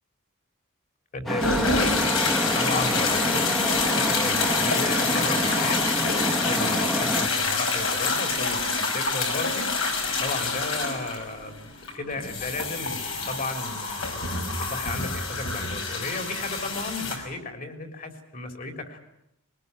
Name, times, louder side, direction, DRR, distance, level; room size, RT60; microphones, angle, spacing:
voice 1, 1.1-5.8 6.5-9.7 9.9-14.2 14.6-19.0, left 2 dB, 40° left, 6 dB, 3.7 m, -34 dB
Traffic noise roadway noise, 1.3-7.3, equal, ahead, 1.4 m, -28 dB
sound 1, 1.4-17.2, left 4 dB, 70° left, 5.5 m, -27 dB
22.0 x 20.0 x 9.7 m, 0.80 s
head